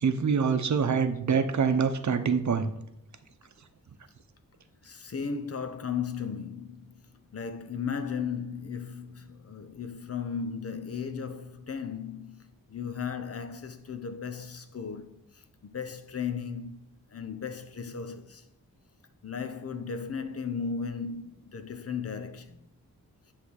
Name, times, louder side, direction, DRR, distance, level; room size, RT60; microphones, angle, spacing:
voice 1, 0.0-2.7, right 6 dB, 55° right, 0.8 m, -25 dB
voice 2, 4.8-6.9 7.3-15.4 15.7-16.8 17.1-18.4 19.2-22.6, left 6 dB, 45° left, 0.8 m, -36 dB
9.6 x 3.5 x 6.4 m
wide cardioid pair, 110°, 34 cm